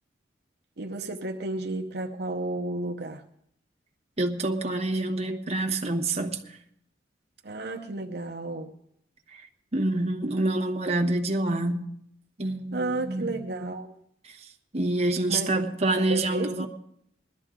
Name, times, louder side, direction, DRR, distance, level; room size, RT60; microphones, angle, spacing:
voice 1, 0.8-3.2 7.4-8.7 12.7-14.0 15.3-15.5 15.9-16.7, right 2 dB, 60° right, 0.9 m, -32 dB
voice 2, 4.2-6.4 9.3-9.4 9.7-11.8 12.4-13.3 14.2-14.3 14.7-16.7, right 2 dB, 35° right, 1.1 m, -27 dB
20.5 x 12.5 x 3.7 m
head